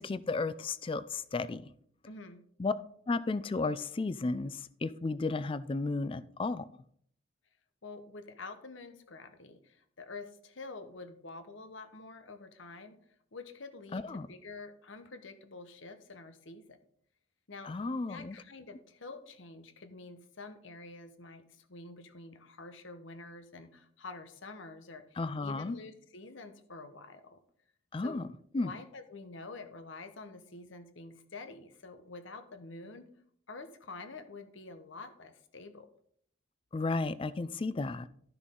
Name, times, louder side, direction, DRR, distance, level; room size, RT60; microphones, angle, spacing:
voice 1, 0.0-1.7 2.6-2.7 3.1-6.7 13.9-14.3 17.6-18.4 25.2-25.8 27.9-28.3 28.5-28.7 36.7-38.1, left 3 dB, 25° left, 15 dB, 0.3 m, -33 dB
voice 2, 2.1-2.4 7.8-13.0 13.3-16.8 17.5-17.8 18.1-27.4 28.0-28.2 28.5-33.1 33.5-35.9, left 3 dB, 65° left, 9 dB, 1.0 m, -48 dB
12.5 x 6.1 x 3.7 m, 0.64 s
head